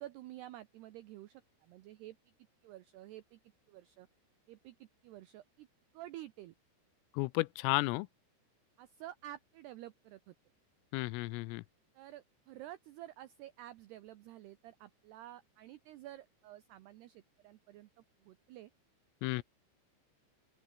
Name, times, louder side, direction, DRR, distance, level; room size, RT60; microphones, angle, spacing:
voice 1, 0.0-2.2 2.6-3.4 3.7-4.1 4.5-5.7 5.9-6.5 8.8-10.4 11.9-18.7 19.4-19.5, right 14 dB, 85° right, 2.3 m, -51 dB
voice 2, 7.1-8.1 10.9-11.6 19.2-19.4, left 22 dB, 85° left, 3.2 m, -33 dB
open air
omnidirectional pair, 6.0 m